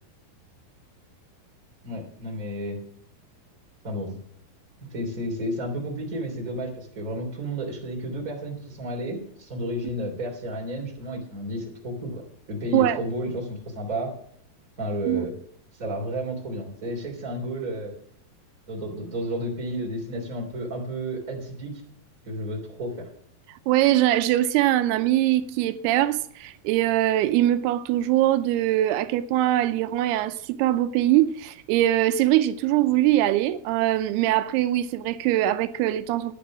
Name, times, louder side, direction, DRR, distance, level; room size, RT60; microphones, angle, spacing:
voice 1, 1.8-2.8 3.8-4.2 4.8-12.2 12.5-14.1 14.8-15.3 15.8-17.9 18.7-21.8 22.2-23.1, equal, 25° right, 3.2 m, -32 dB
voice 2, 23.7-36.4, right 14 dB, 85° right, 2.6 m, -22 dB
10.0 x 9.7 x 6.0 m
omnidirectional pair, 4.5 m